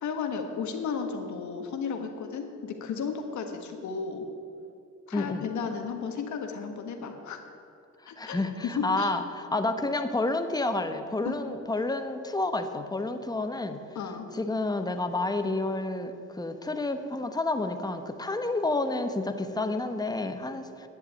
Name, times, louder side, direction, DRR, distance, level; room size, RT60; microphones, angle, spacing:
voice 1, 0.0-4.2 5.1-7.4 8.1-8.4 8.8-9.1 11.2-11.3 13.9-14.3, left 6 dB, 70° left, 5 dB, 1.5 m, -34 dB
voice 2, 5.1-5.5 8.2-13.8 14.3-20.9, left 2 dB, 15° left, 8 dB, 0.9 m, -30 dB
10.5 x 7.6 x 8.7 m, 2.7 s
cardioid pair, 90°, 30 cm